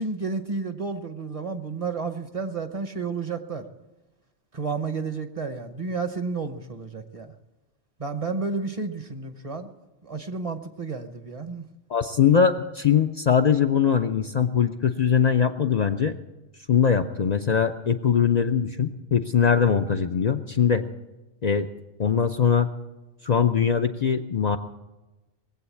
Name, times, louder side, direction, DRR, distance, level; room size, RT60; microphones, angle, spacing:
voice 1, 0.0-3.6 4.5-7.3 8.0-9.7 10.0-11.7, right 4 dB, 35° right, 9 dB, 0.9 m, -31 dB
voice 2, 11.9-16.2 16.7-20.8 21.4-21.7 22.0-22.7 23.2-24.6, left 7 dB, 50° left, 6 dB, 0.6 m, -21 dB
20.5 x 8.0 x 8.3 m, 1.1 s
omnidirectional pair, 1.1 m